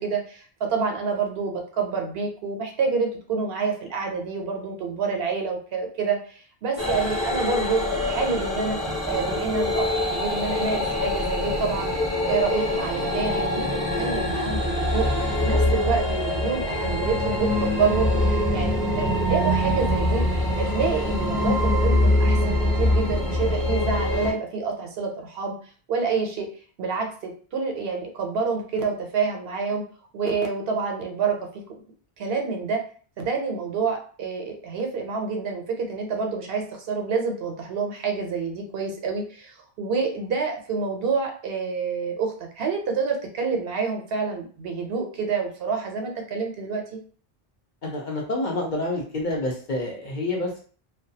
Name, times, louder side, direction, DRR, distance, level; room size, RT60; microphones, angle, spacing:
voice 1, 0.0-8.8 9.1-11.9 12.3-13.7 14.0-15.1 15.4-20.2 20.5-25.5 25.9-26.5 26.8-29.8 30.1-31.8 32.2-32.8 33.2-47.0, right 5 dB, 70° right, 3 dB, 0.8 m, -28 dB
sound 1, 6.8-24.3, left 1 dB, 20° left, 0.8 m, -24 dB
voice 2, 18.5-18.9 47.8-50.6, left 2 dB, 55° left, -1 dB, 0.6 m, -28 dB
2.3 x 2.2 x 2.6 m, 0.43 s
omnidirectional pair, 1.1 m